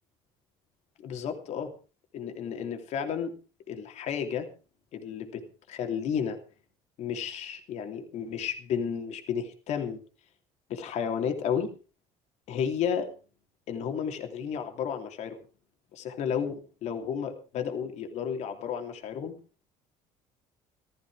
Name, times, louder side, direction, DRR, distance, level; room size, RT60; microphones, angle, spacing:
voice 1, 1.0-1.7 2.1-3.3 3.7-4.5 4.9-6.4 7.0-10.0 10.7-11.7 12.5-13.1 13.7-15.4 15.9-19.3, left 7 dB, 65° left, 5 dB, 3.0 m, -32 dB
15.5 x 14.0 x 4.9 m, 0.36 s
supercardioid pair, 95°, 13 cm